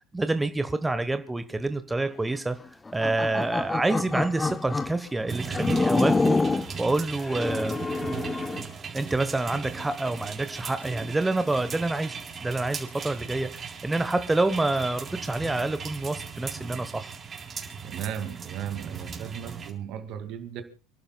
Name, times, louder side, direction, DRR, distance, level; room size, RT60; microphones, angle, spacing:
voice 1, 0.1-2.6 2.9-7.8 8.9-17.2, right 2 dB, 10° right, 1.2 m, -27 dB
sound 1, 2.9-5.0 5.5-6.7 7.2-8.7, left 3 dB, 20° left, 0.8 m, -27 dB
sound 2, 5.3-19.7, right 6 dB, 35° right, 3.7 m, -38 dB
sound 3, 7.9-8.5 9.0-9.2 9.6-10.1 10.8-10.9 11.4-11.6, left 5 dB, 85° left, 5.0 m, -57 dB
voice 2, 17.8-20.6, right 9 dB, 55° right, 2.3 m, -35 dB
29.5 x 11.5 x 2.3 m
hypercardioid pair, 70°, 0 cm